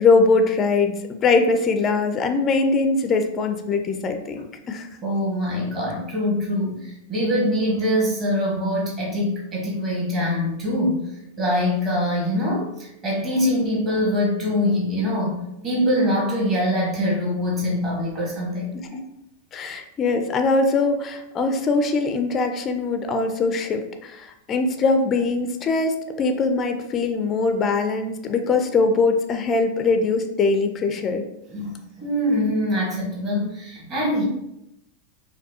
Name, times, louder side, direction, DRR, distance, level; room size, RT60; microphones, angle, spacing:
voice 1, 0.0-4.9 18.9-19.0 19.5-31.3, left 3 dB, 25° left, 6 dB, 0.4 m, -22 dB
voice 2, 5.0-11.0 11.4-19.2 31.5-34.2, left 1 dB, 30° right, -4 dB, 1.4 m, -24 dB
4.6 x 2.2 x 2.7 m, 0.85 s
figure-of-eight pair, 90°, 0 cm